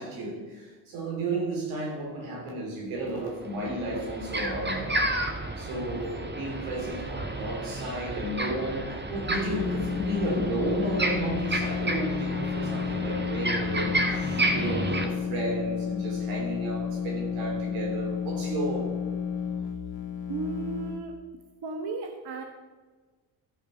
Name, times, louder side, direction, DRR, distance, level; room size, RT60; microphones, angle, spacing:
voice 1, 0.0-5.0 5.6-19.0, right 1 dB, 90° right, -1 dB, 3.4 m, -33 dB
sound 1, 3.0-3.1 3.5-15.0, right 2 dB, 20° right, 1.6 m, -31 dB
sound 2, 9.3-21.0, left 7 dB, 65° left, 2.1 m, -32 dB
voice 2, 20.3-21.2 21.6-22.4, right 4 dB, 55° right, 4 dB, 1.3 m, -35 dB
13.5 x 5.1 x 6.5 m, 1.3 s
cardioid pair, 80°, 47 cm